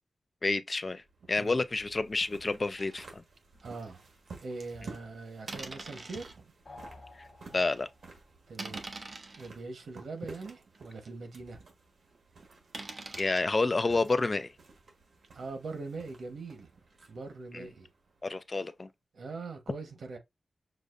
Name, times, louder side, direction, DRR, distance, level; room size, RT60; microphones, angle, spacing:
voice 1, 0.4-1.0 1.3-3.2 7.5-7.9 13.2-14.5 17.5-17.6 18.2-18.9, left 3 dB, 30° left, 0.4 m, -29 dB
sound 1, 1.0-18.6, right 3 dB, 75° right, 1.4 m, -53 dB
sound 2, 2.8-3.0 3.5-3.6 4.6-4.9 5.5-6.3 7.0-7.1 7.6-7.8 8.5-9.5 10.2-10.3 10.7-10.8 11.1-11.2 12.7-13.4, right 3 dB, 40° right, 0.8 m, -43 dB
voice 2, 3.6-4.1 4.4-6.5 8.5-8.8 9.4-11.7 15.3-16.7 17.1-17.9 19.1-20.2, right 3 dB, 90° right, 1.1 m, -42 dB
sound 3, 6.7-8.2, left 2 dB, 50° left, 1.2 m, -51 dB
6.3 x 2.5 x 2.5 m
wide cardioid pair, 150°, 0 cm